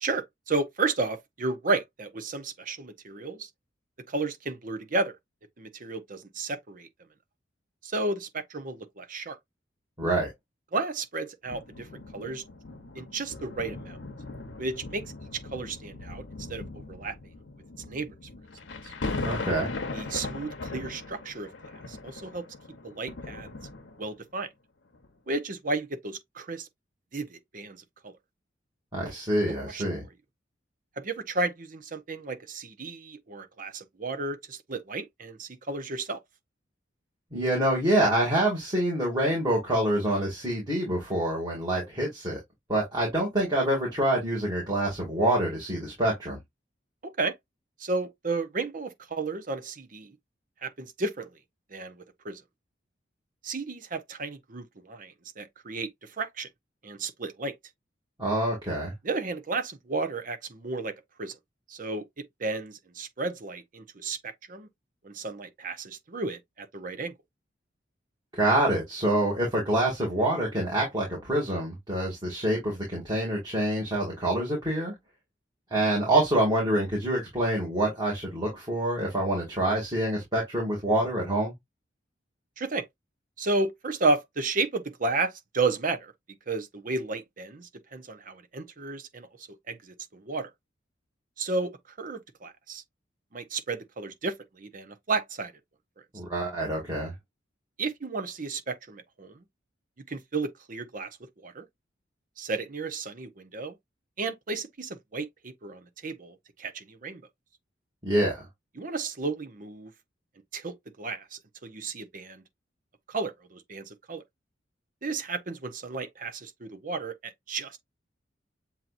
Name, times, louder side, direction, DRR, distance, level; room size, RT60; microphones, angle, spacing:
voice 1, 0.0-3.5 4.1-5.2 5.6-6.9 7.8-9.4 10.7-11.9 12.1-12.4 12.9-14.0 14.6-15.0 15.3-16.2 16.5-17.2 17.9-18.1 18.8-18.9 19.9-21.5 21.9-22.5 22.8-23.5 24.0-24.5 25.3-26.7 27.1-27.8 28.0-28.1 29.5-29.8 31.0-36.2 47.0-47.3 47.8-50.1 50.6-51.3 51.7-52.4 53.4-55.9 56.2-56.5 56.8-57.5 59.0-61.4 61.7-62.1 62.4-64.7 65.0-67.1 82.6-82.9 83.4-86.1 86.5-89.3 89.7-90.5 91.4-92.8 93.3-95.5 97.8-99.4 100.1-101.1 101.4-101.6 102.4-103.7 104.2-107.2 108.8-109.9 110.5-112.4 113.1-114.2 115.0-117.8, right 3 dB, 45° right, 0.8 m, -33 dB
voice 2, 10.0-10.3 19.2-19.7 28.9-30.1 37.3-42.4 42.7-46.4 58.2-58.9 68.3-74.9 75.7-81.5 96.1-97.1 108.0-108.4, right 1 dB, 25° right, 2.3 m, -26 dB
sound 1, 11.5-24.2 24.9-25.1, left 3 dB, 80° left, 0.8 m, -39 dB
7.4 x 2.8 x 2.5 m
head